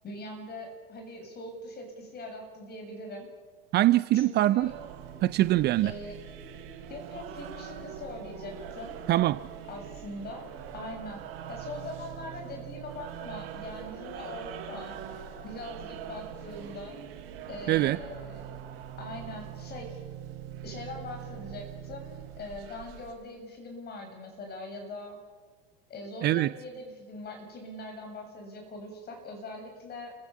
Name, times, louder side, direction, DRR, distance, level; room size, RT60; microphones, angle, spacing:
voice 1, 0.0-3.3 4.1-4.7 5.8-6.2 6.9-9.0 9.7-11.2 11.5-15.0 15.4-17.0 17.5-18.6 19.0-20.0 20.6-25.2 25.9-30.2, left 2 dB, 35° left, 3 dB, 7.3 m, -42 dB
voice 2, 3.7-4.7 5.2-5.9 9.1-9.4 17.7-18.0 26.2-26.5, right 15 dB, 35° right, 16 dB, 0.6 m, -23 dB
sound 1, 4.6-23.1, right 9 dB, 55° right, 5.1 m, -43 dB
28.5 x 15.5 x 7.2 m, 1.5 s
hypercardioid pair, 90°, 30 cm